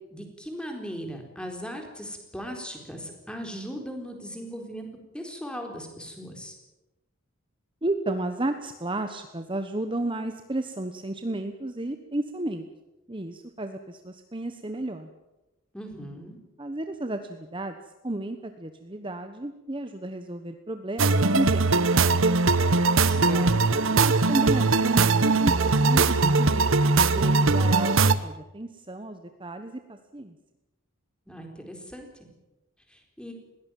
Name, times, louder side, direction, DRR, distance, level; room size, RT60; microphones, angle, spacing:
voice 1, 0.1-4.9 5.1-6.6 15.7-16.4 23.1-23.7 31.3-32.1 32.9-33.3, equal, 5° left, 3 dB, 4.2 m, -38 dB
voice 2, 7.8-12.7 13.1-15.1 16.6-17.8 18.0-22.2 23.7-26.7 27.1-30.3, right 1 dB, 25° right, 7 dB, 1.2 m, -33 dB
sound 1, 21.0-28.1, right 3 dB, 75° right, 1.1 m, -21 dB
21.0 x 17.5 x 9.2 m, 0.99 s
head